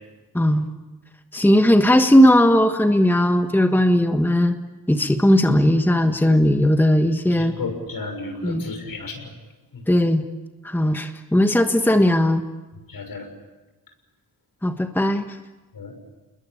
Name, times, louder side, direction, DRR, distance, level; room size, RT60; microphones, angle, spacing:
voice 1, 0.3-0.7 1.3-4.6 4.9-7.5 8.4-8.7 9.9-10.2 10.6-12.4 14.6-15.2, left 1 dB, 5° left, 6 dB, 1.4 m, -17 dB
voice 2, 7.3-9.3 12.9-13.2 15.7-15.9, left 3 dB, 65° left, 5 dB, 6.4 m, -32 dB
29.0 x 21.5 x 8.6 m, 1.1 s
cardioid pair, 95°, 37 cm